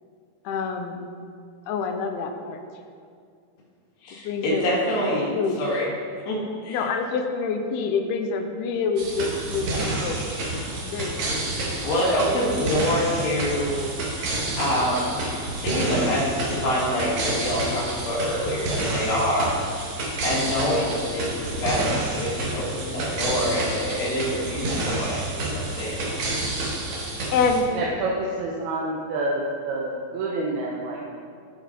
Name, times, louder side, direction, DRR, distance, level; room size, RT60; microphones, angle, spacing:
voice 1, 0.4-1.1 1.7-2.6 4.1-4.7 5.3-5.6 6.7-10.2 10.8-11.3 27.3-27.7, left 5 dB, 85° left, 5 dB, 2.6 m, -26 dB
voice 2, 4.0-5.9 6.3-6.8 11.0-11.1 11.8-13.9 14.6-15.2 15.5-19.6 20.2-25.2 25.5-26.2, equal, 70° left, -6 dB, 3.7 m, -26 dB
sound 1, 9.0-27.6, right 2 dB, 60° right, 2.2 m, -29 dB
voice 3, 27.7-31.0, right 2 dB, 80° right, -3 dB, 2.9 m, -28 dB
14.5 x 5.8 x 4.4 m, 2.2 s
omnidirectional pair, 4.5 m